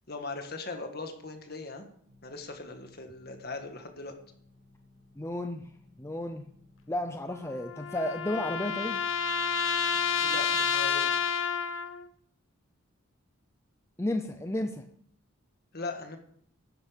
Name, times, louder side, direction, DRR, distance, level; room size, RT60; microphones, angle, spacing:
voice 1, 0.1-1.8 2.2-4.2 10.1-11.1 15.7-16.2, left 3 dB, 50° left, 6 dB, 1.7 m, -39 dB
sound 1, 2.0-10.7, left 2 dB, 55° right, 2.8 m, -60 dB
voice 2, 5.2-5.6 6.0-6.5 6.9-9.0 14.0-14.8, left 1 dB, 15° left, 6 dB, 0.6 m, -32 dB
sound 2, 7.3-12.0, left 6 dB, 65° left, 0.8 m, -29 dB
12.0 x 9.7 x 5.2 m, 0.64 s
head